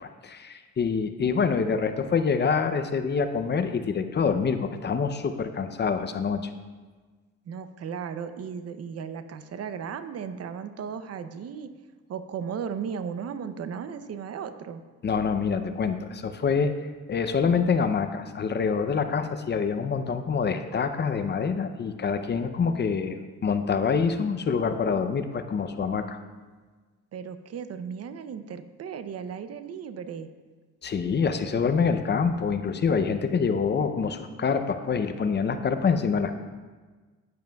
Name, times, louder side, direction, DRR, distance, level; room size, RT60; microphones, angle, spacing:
voice 1, 0.0-6.4 15.0-16.7 17.1-23.2 23.4-26.2 30.8-36.3, left 5 dB, 35° left, 9 dB, 0.6 m, -26 dB
voice 2, 7.5-11.7 12.1-14.8 27.1-30.3, right 7 dB, 55° right, 11 dB, 0.6 m, -36 dB
10.0 x 9.5 x 2.3 m, 1.4 s
cardioid pair, 90°, 30 cm